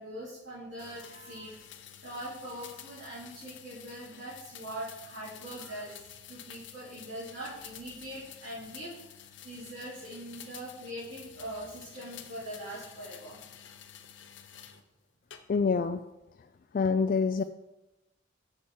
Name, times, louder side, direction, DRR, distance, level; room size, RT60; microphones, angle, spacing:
voice 1, 0.0-6.0 6.3-9.2 9.4-13.4, right 1 dB, 65° right, -12 dB, 3.5 m, -42 dB
sound 1, 0.8-14.8 15.3-15.8, left 9 dB, 75° left, 0.7 m, -50 dB
voice 2, 15.5-16.0 16.4-16.5 16.7-17.4, left 5 dB, 45° left, 9 dB, 0.3 m, -26 dB
7.1 x 6.9 x 4.8 m, 0.95 s
head